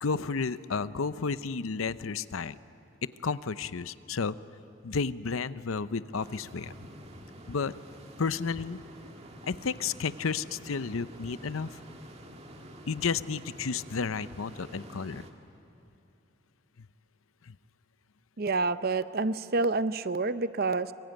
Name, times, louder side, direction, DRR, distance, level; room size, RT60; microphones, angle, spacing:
voice 1, 0.0-2.6 3.2-4.4 4.8-6.7 7.5-7.7 8.2-8.8 9.5-11.8 12.9-15.3 17.5-17.6, left 5 dB, 85° left, 15 dB, 0.7 m, -32 dB
sound 1, 6.1-15.3, right 1 dB, 30° right, 1.9 m, -48 dB
voice 2, 18.4-20.9, right 3 dB, 50° right, 13 dB, 0.7 m, -28 dB
25.5 x 23.0 x 9.1 m, 2.8 s
head